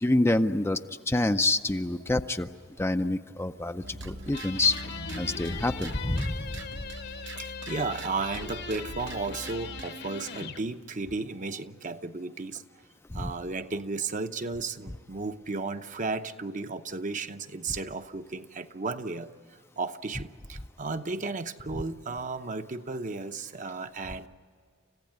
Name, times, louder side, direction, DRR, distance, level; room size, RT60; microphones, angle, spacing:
voice 1, 0.0-2.5 2.8-4.8 5.2-6.6 13.1-13.3, left 2 dB, 15° left, 8 dB, 0.5 m, -27 dB
sound 1, 3.8-10.0, right 2 dB, 65° right, 0.9 m, -42 dB
sound 2, 4.3-10.7, left 6 dB, 60° left, 1.3 m, -41 dB
sound 3, 4.6-7.8, left 1 dB, 90° left, 6.2 m, -46 dB
voice 2, 7.4-12.6 13.1-19.3 19.8-24.3, right 3 dB, 40° right, 8 dB, 0.8 m, -34 dB
29.0 x 15.5 x 9.3 m, 2.1 s
head